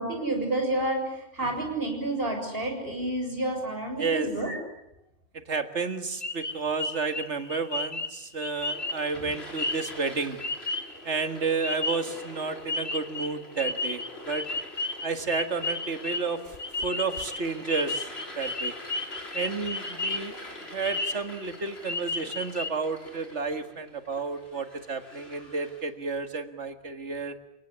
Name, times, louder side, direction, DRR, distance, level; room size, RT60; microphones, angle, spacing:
voice 1, 0.0-4.6, right 2 dB, 55° right, 3 dB, 7.4 m, -29 dB
voice 2, 4.0-4.3 5.3-10.4 11.0-14.5 15.0-18.1 18.4-18.7 19.3-20.4 20.7-27.4, right 4 dB, 85° right, 8 dB, 2.2 m, -31 dB
sound 1, 6.2-11.1 11.6-12.4 12.7-20.4 20.7-21.5 21.8-22.7, left 2 dB, 30° left, 1.4 m, -33 dB
sound 2, 8.6-25.9, left 1 dB, 65° left, 6.0 m, -45 dB
30.0 x 18.5 x 9.9 m, 0.85 s
omnidirectional pair, 1.2 m